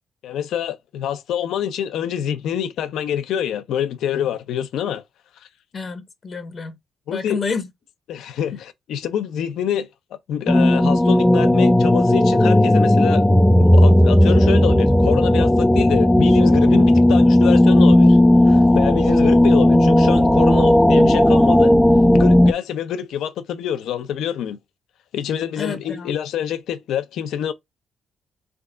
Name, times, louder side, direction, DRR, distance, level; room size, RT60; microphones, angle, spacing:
voice 1, 0.2-5.0 7.1-7.4 8.1-9.9 10.3-13.2 13.6-18.2 18.4-21.7 22.2-24.6 25.1-27.5, left 9 dB, 80° left, 0.7 m, -26 dB
voice 2, 5.7-6.8 7.1-7.7 25.6-26.1, left 5 dB, 45° left, 0.9 m, -29 dB
sound 1, 10.5-22.5, left 1 dB, 5° left, 0.4 m, -14 dB
3.5 x 3.5 x 3.8 m
cardioid pair, 90°, 0 cm